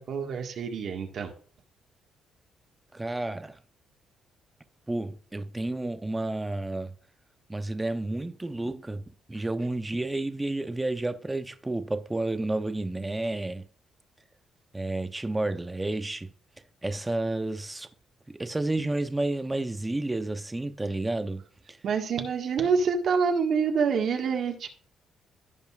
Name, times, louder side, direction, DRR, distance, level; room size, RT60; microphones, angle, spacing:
voice 1, 0.0-1.3 21.8-24.7, right 5 dB, 60° right, 1.6 m, -27 dB
voice 2, 2.9-3.6 4.9-6.9 7.5-9.0 9.3-13.7 14.7-16.3 16.8-17.9 18.3-21.4 21.7-21.8, right 2 dB, 15° right, 0.7 m, -31 dB
15.5 x 5.4 x 2.4 m
cardioid pair, 110°, 0 cm